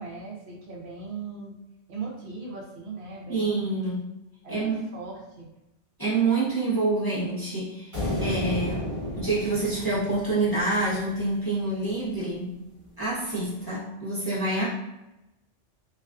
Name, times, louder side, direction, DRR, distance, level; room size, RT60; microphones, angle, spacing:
voice 1, 0.0-1.5 1.9-3.8 4.4-5.5, right 5 dB, 65° right, -2 dB, 0.8 m, -38 dB
voice 2, 3.3-4.0 4.5-4.9 6.0-8.8 9.1-12.6 13.0-14.7, right 2 dB, 25° left, -10 dB, 0.5 m, -27 dB
sound 1, 7.9-11.3, left 1 dB, 30° right, 1.1 m, -32 dB
2.3 x 2.3 x 2.3 m, 0.95 s
omnidirectional pair, 1.2 m